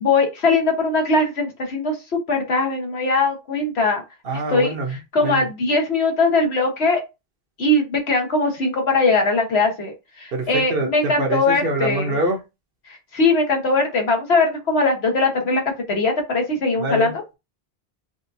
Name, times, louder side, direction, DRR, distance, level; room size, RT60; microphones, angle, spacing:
voice 1, 0.0-4.0 4.5-4.7 5.1-7.0 7.6-12.1 12.9-15.6 15.9-17.1, left 3 dB, 85° left, 2 dB, 1.4 m, -20 dB
voice 2, 4.2-5.5 10.3-12.4 16.8-17.3, right 2 dB, 65° right, 2 dB, 1.2 m, -25 dB
5.0 x 2.5 x 2.6 m, 0.25 s
omnidirectional pair, 1.0 m